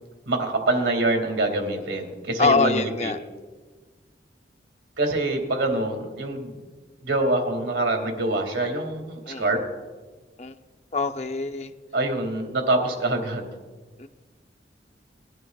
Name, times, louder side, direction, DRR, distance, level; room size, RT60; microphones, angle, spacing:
voice 1, 0.3-3.1 5.0-6.7 7.0-9.6 11.9-13.5, right 2 dB, 85° right, 3 dB, 2.3 m, -25 dB
voice 2, 2.4-3.2 9.3-9.4 10.4-10.5 10.9-11.7 14.0-14.1, left 4 dB, 40° left, 8 dB, 0.6 m, -24 dB
21.5 x 13.0 x 2.4 m, 1.4 s
head